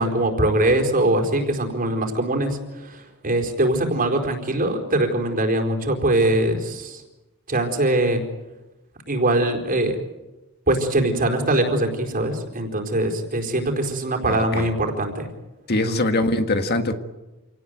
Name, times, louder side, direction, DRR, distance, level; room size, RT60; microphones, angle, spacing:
voice 1, 0.0-7.0 7.5-8.2 9.1-10.0 10.7-15.3 15.7-16.0, right 1 dB, 40° right, 4 dB, 4.4 m, -22 dB
voice 2, 14.3-14.6 15.7-16.9, left 2 dB, 45° left, 7 dB, 1.8 m, -22 dB
28.0 x 18.5 x 9.2 m, 1.1 s
head